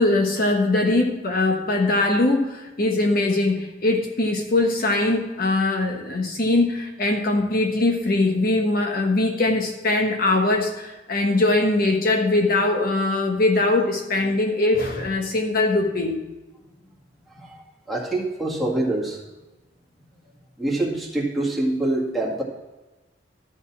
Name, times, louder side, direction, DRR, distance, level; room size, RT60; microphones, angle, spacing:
voice 1, 0.0-16.2, left 2 dB, 50° left, 2 dB, 1.2 m, -21 dB
voice 2, 17.3-19.2 20.6-22.4, right 2 dB, ahead, -3 dB, 2.0 m, -25 dB
13.0 x 5.4 x 7.2 m, 1.1 s
head